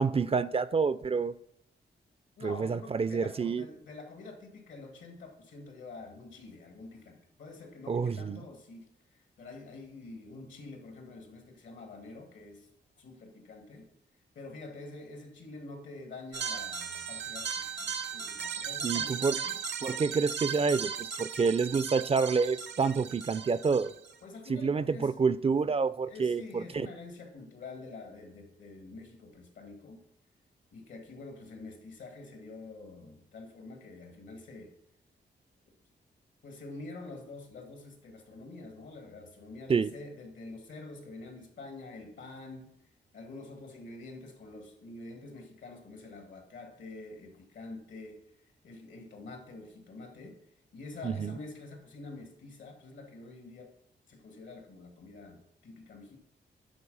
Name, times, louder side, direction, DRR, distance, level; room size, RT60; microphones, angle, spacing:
voice 1, 0.0-1.3 2.4-3.6 7.9-8.4 18.8-19.4 19.8-23.9 24.5-26.9 39.7-39.9 51.0-51.3, right 5 dB, 30° right, 0.4 m, -28 dB
voice 2, 2.4-8.9 9.1-12.7 13.0-13.9 14.4-19.6 24.2-25.1 26.1-30.0 30.7-34.7 36.4-42.7 43.1-48.2 48.6-50.3 50.7-53.7 54.1-56.2, left 3 dB, 80° left, 2.0 m, -47 dB
sound 1, 16.3-24.1, right 6 dB, 75° right, 0.7 m, -37 dB
10.0 x 3.9 x 5.5 m
cardioid pair, 75°, 19 cm